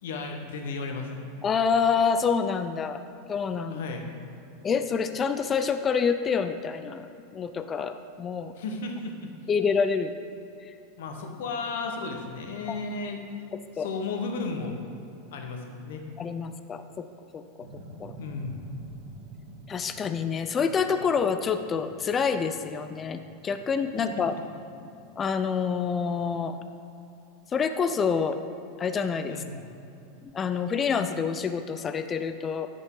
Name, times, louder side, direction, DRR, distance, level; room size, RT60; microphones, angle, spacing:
voice 1, 0.0-1.2 3.7-4.1 8.6-9.3 11.0-13.2 13.7-14.8 15.3-16.0 18.2-18.6 29.3-29.8, left 3 dB, 80° left, 3 dB, 1.1 m, -34 dB
voice 2, 1.4-3.0 3.3-3.8 4.6-8.5 9.5-10.1 10.7-10.8 12.7-12.8 13.8-13.9 16.2-17.1 17.3-17.4 18.0-18.1 19.7-24.3 25.2-26.6 27.5-28.4 28.8-29.4 30.3-32.7, left 6 dB, 20° left, 9 dB, 0.3 m, -27 dB
sound 1, 17.6-25.8, right 2 dB, 75° right, 1.5 m, -48 dB
9.8 x 5.3 x 3.8 m, 2.7 s
supercardioid pair, 140°, 0 cm